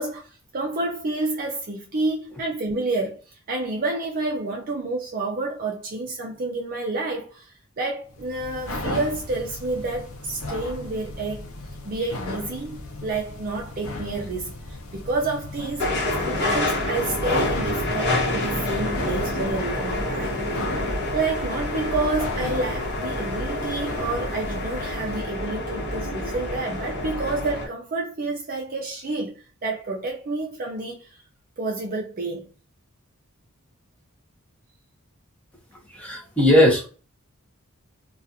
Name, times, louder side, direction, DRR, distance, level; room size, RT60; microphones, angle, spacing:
voice 1, 0.0-11.5 11.9-20.7 21.1-31.2 31.6-32.5, right 3 dB, 45° right, 0.5 m, -29 dB
sound 1, 8.1-25.3, left 2 dB, 80° left, 0.5 m, -36 dB
sound 2, 15.8-27.7, left 1 dB, 55° left, 1.0 m, -27 dB
voice 2, 35.9-36.9, left 1 dB, 5° left, 0.8 m, -18 dB
2.4 x 2.3 x 2.6 m
head